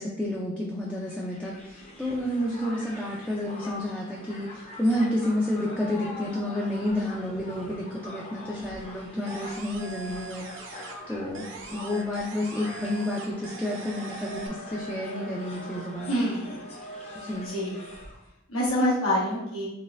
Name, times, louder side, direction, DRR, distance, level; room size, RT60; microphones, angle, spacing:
voice 1, 0.0-10.7 11.1-16.2 17.2-17.6, left 1 dB, 5° left, -5 dB, 0.4 m, -30 dB
Crowd, 0.9-18.3, left 1 dB, 30° left, 0.7 m, -43 dB
sound 1, 9.3-11.1 11.3-14.5, right 4 dB, 65° right, 0.6 m, -42 dB
voice 2, 16.1-16.6 17.4-17.8 18.5-19.7, equal, 85° left, -6 dB, 1.3 m, -26 dB
4.0 x 3.2 x 2.5 m, 0.86 s
head